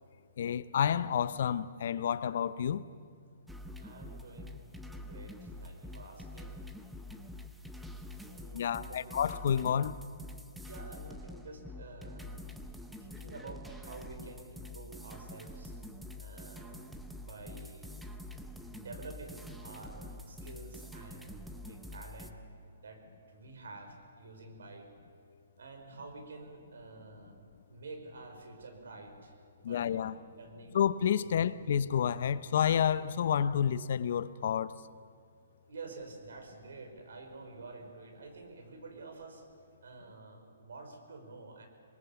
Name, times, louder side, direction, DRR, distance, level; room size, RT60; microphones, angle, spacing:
voice 1, 0.4-2.8 8.5-10.0 29.6-30.1 30.7-34.7, left 8 dB, 60° left, 0.8 m, -29 dB
sound 1, 3.5-22.3, left 1 dB, 5° right, 1.0 m, -46 dB
voice 2, 3.8-6.6 8.2-9.0 10.6-12.4 13.0-15.7 16.2-16.9 17.2-17.9 18.6-22.3 22.8-23.0 23.3-24.9 25.6-30.8 31.2-31.4 35.7-39.4 39.8-41.7, right 3 dB, 75° right, 5.1 m, -49 dB
26.0 x 21.0 x 7.2 m
hypercardioid pair, 150°, 0 cm